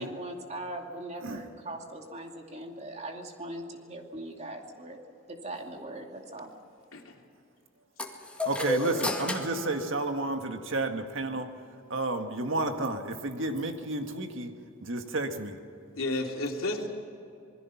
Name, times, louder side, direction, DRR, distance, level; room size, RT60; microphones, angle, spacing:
voice 1, 0.0-5.0 5.3-6.5, right 1 dB, 35° right, 2 dB, 2.5 m, -40 dB
voice 2, 6.9-7.2 8.8-9.1 9.5-9.6 15.9-16.9, left 2 dB, 80° left, 1 dB, 3.1 m, -33 dB
sound 1, 8.0-10.7, left 1 dB, 5° left, 2.1 m, -33 dB
voice 3, 8.5-11.5 11.9-14.5 14.8-15.6, right 2 dB, 65° right, 5 dB, 1.8 m, -31 dB
27.0 x 21.0 x 5.9 m, 2.6 s
head